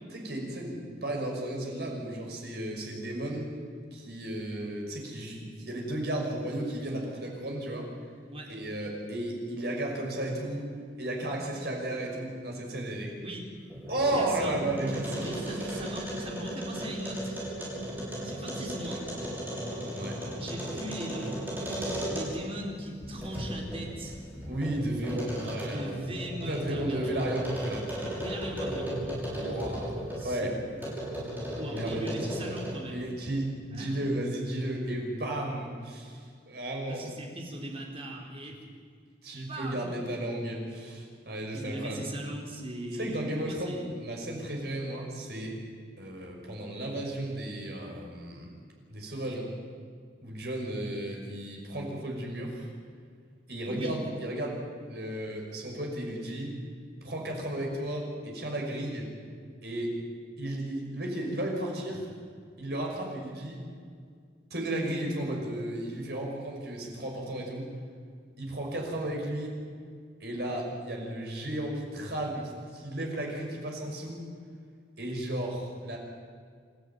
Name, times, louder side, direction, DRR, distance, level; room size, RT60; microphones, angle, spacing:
voice 1, 0.1-3.5 3.9-7.9 8.5-10.7 11.0-13.2 13.9-15.7 20.0-20.2 24.5-25.8 26.4-27.9 29.4-29.9 30.2-30.6 31.7-32.2 32.9-37.1 38.4-38.5 39.2-42.0 42.9-45.6 46.0-48.5 48.9-49.5 50.2-52.7 53.5-54.6 54.9-56.5 57.0-59.1 59.6-60.0 60.4-62.1 62.6-63.6 64.5-67.7 68.4-69.5 70.2-74.3 75.0-76.0, right 1 dB, 60° right, 0 dB, 6.0 m, -34 dB
sound 1, 13.6-22.6 23.0-30.3 30.8-32.9, equal, 10° right, 6.6 m, -36 dB
voice 2, 14.1-14.5 15.2-17.4 18.2-19.1 20.4-21.4 22.1-24.2 25.7-27.4 28.2-28.9 29.3-29.7 30.2-30.5 31.5-33.2 33.7-34.0 36.9-38.6 39.5-40.0 41.5-44.0 53.7-53.9, right 1 dB, 30° right, 0 dB, 4.1 m, -39 dB
27.5 x 13.5 x 9.5 m, 2.1 s
head